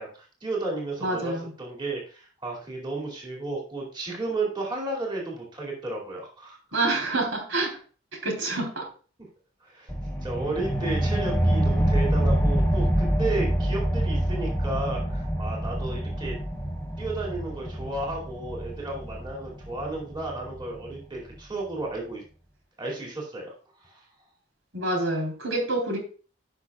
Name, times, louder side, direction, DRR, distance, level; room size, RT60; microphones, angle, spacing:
voice 1, 0.0-6.6 9.6-9.9 10.2-16.4 17.0-22.2 22.8-23.5 23.8-24.0, right 2 dB, 25° right, -2 dB, 2.5 m, -33 dB
voice 2, 1.0-1.4 6.7-7.8 8.1-8.9 24.7-26.0, right 2 dB, 80° right, 1 dB, 3.6 m, -27 dB
sound 1, 9.9-21.0, right 1 dB, 10° left, 1.4 m, -26 dB
16.0 x 5.9 x 2.3 m, 0.39 s
head